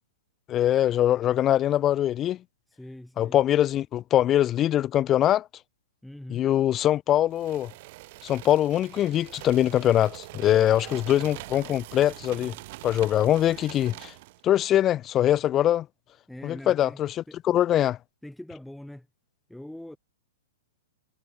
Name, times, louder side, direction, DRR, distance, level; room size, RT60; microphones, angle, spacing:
voice 1, 0.5-2.4 3.2-5.5 6.3-7.7 8.2-12.5 12.8-14.1 14.4-15.9 16.4-17.1 17.4-18.0, left 12 dB, 25° left, 0.5 m, -23 dB
voice 2, 2.7-3.4 6.0-6.5 10.7-11.3 16.3-17.0 17.3-17.4 18.2-19.1 19.5-20.0, left 1 dB, ahead, 3.8 m, -43 dB
sound 1, 7.3-14.4, right 21 dB, 45° right, 5.6 m, -43 dB
figure-of-eight pair, 110°, 0 cm